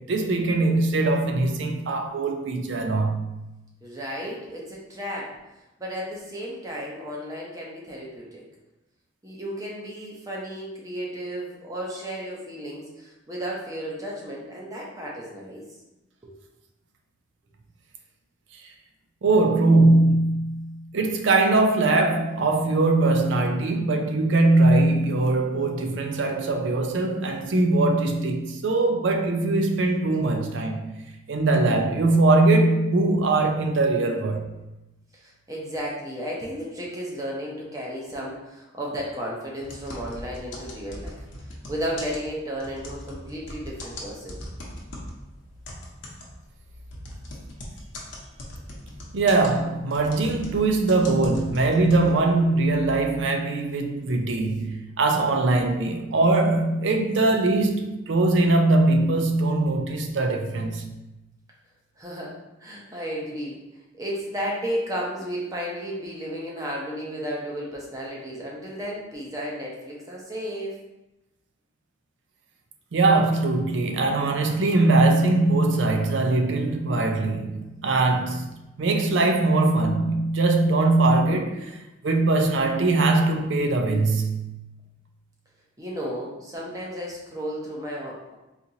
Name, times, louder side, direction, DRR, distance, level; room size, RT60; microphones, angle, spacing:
voice 1, 0.0-3.4 19.2-30.8 31.3-34.5 49.1-60.9 72.9-78.5 78.8-81.8 82.0-84.6, right 2 dB, 75° right, 0.5 m, -21 dB
voice 2, 3.8-5.3 5.8-8.4 9.2-15.7 16.2-16.3 35.1-44.4 62.0-62.3 62.6-63.6 63.9-70.7 85.8-88.3, equal, 20° right, 0.7 m, -33 dB
sound 1, 39.6-45.2 45.6-52.4, left 1 dB, 75° left, 0.8 m, -39 dB
4.0 x 2.9 x 2.7 m
head